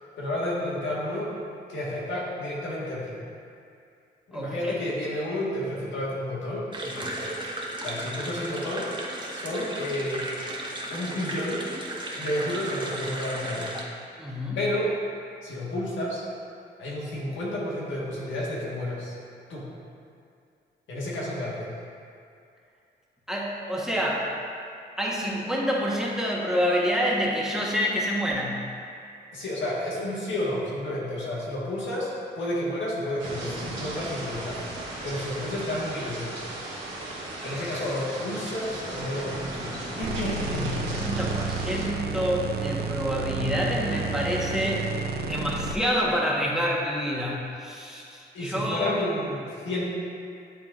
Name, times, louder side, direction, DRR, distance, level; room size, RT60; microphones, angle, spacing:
voice 1, 0.2-1.3 1.7-3.2 4.3-7.3 7.8-8.9 9.3-10.3 10.9-11.6 12.1-13.7 14.5-14.9 15.4-16.2 16.8-19.1 19.5-19.7 20.9-21.7 29.3-34.6 35.0-36.3 37.4-40.7 48.3-49.8, left 1 dB, 85° left, -6 dB, 1.5 m, -31 dB
voice 2, 4.3-4.8 14.2-14.6 23.3-24.3 25.0-28.6 37.3-37.8 40.4-44.8 45.2-49.0, equal, 5° right, -4 dB, 1.1 m, -28 dB
sound 1, 6.7-13.8, right 1 dB, 25° right, 1.0 m, -35 dB
sound 2, 33.2-41.9, right 2 dB, 90° right, 1.4 m, -36 dB
sound 3, 40.0-45.8, right 4 dB, 55° right, 0.5 m, -31 dB
11.0 x 3.7 x 2.4 m, 2.4 s
cardioid pair, 70°, 19 cm